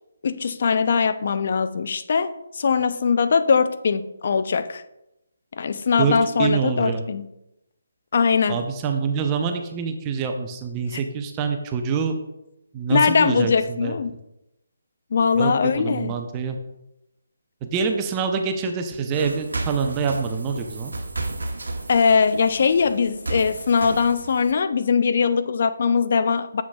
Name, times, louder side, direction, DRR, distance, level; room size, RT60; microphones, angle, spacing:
voice 1, 0.2-4.8 5.6-7.3 8.1-8.6 12.9-14.1 15.1-16.1 21.9-26.6, left 5 dB, 50° left, 12 dB, 0.4 m, -21 dB
voice 2, 6.0-7.0 8.5-12.1 12.7-13.9 15.3-15.5 15.8-16.6 17.6-20.9, right 5 dB, 20° right, 5 dB, 0.6 m, -25 dB
sound 1, 19.1-24.5, right 2 dB, 75° right, 0.9 m, -33 dB
7.4 x 5.9 x 2.3 m, 0.87 s
figure-of-eight pair, 150°, 0 cm